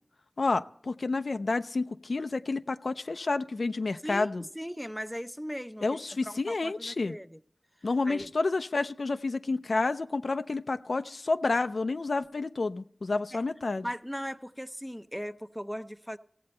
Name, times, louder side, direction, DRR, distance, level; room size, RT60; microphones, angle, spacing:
voice 1, 0.4-4.4 5.8-7.1 7.8-13.9, left 3 dB, 85° left, 10 dB, 0.4 m, -30 dB
voice 2, 4.0-5.8 6.2-7.4 8.0-8.3 13.3-13.4 13.8-16.2, equal, ahead, 11 dB, 0.5 m, -38 dB
16.5 x 7.7 x 4.2 m, 0.64 s
wide cardioid pair, 55°, 0 cm